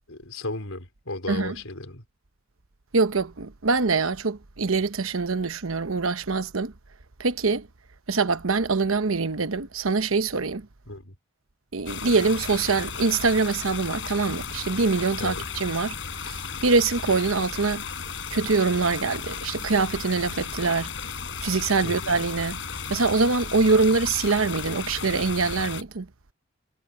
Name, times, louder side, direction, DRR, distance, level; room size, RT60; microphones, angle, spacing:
voice 1, 0.1-2.0 10.9-11.1 15.2-15.4 21.8-22.1, left 2 dB, 85° left, 4.5 m, -35 dB
voice 2, 2.9-6.7 7.2-7.7 8.1-10.7 11.7-16.0 16.2-17.8 18.3-20.9 21.4-22.6 22.9-26.1, right 4 dB, 80° right, 1.0 m, -24 dB
sound 1, 11.9-25.8, left 6 dB, 60° left, 6.6 m, -34 dB
head